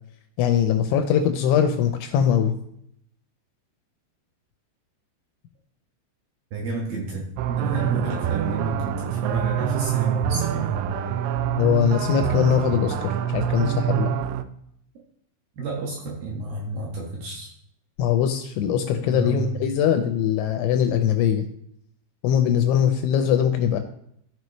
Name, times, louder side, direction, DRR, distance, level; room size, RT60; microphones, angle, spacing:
voice 1, 0.4-2.6 11.6-14.1 18.0-21.5 22.2-23.8, left 9 dB, 80° left, 7 dB, 2.8 m, -21 dB
voice 2, 6.5-10.8 15.6-17.5 19.1-19.5, right 3 dB, 65° right, -3 dB, 2.6 m, -30 dB
sound 1, 7.4-14.4, right 10 dB, 85° right, 2.6 m, -25 dB
14.5 x 4.9 x 3.1 m, 0.71 s
omnidirectional pair, 5.7 m